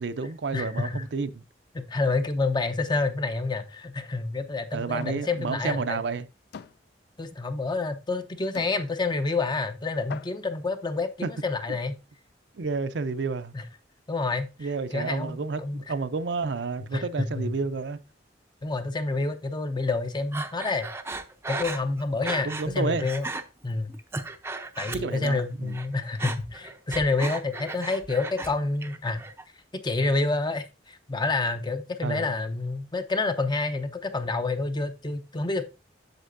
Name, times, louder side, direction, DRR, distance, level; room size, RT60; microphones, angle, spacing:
voice 1, 0.0-1.4 4.7-6.3 11.2-11.3 12.5-13.5 14.6-15.6 15.9-18.0 22.4-23.1 24.9-25.8 32.0-32.3, right 4 dB, 70° right, 0.5 m, -30 dB
voice 2, 0.5-1.0 1.7-6.0 7.2-11.9 13.5-13.6 14.1-14.5 14.9-15.8 16.9-17.5 18.6-20.9 21.5-22.5 22.7-23.3 23.6-24.0 24.8-29.2 29.8-35.6, left 3 dB, 25° left, 0.6 m, -28 dB
sound 1, 5.0-5.2 5.7-5.9 6.5-6.8 7.7-7.8 8.5-8.8 9.6-9.7 10.1-10.5, left 6 dB, 60° left, 0.3 m, -42 dB
Breathing, 20.3-22.7 23.0-23.4 23.9-25.4 25.7-28.5 28.8-29.4, right 3 dB, 15° right, 0.5 m, -35 dB
7.9 x 6.6 x 2.5 m
head